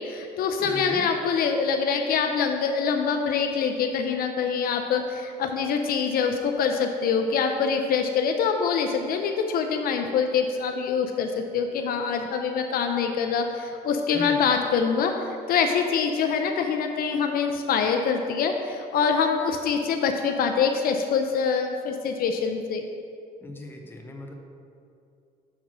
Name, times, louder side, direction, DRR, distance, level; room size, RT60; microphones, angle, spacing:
voice 1, 0.0-15.1 15.5-22.8, left 6 dB, 60° left, 4 dB, 0.5 m, -25 dB
voice 2, 0.6-1.0 14.1-14.4 23.4-24.3, left 2 dB, 15° left, 1 dB, 0.8 m, -38 dB
6.1 x 4.0 x 5.9 m, 2.5 s
cardioid pair, 110°, 17 cm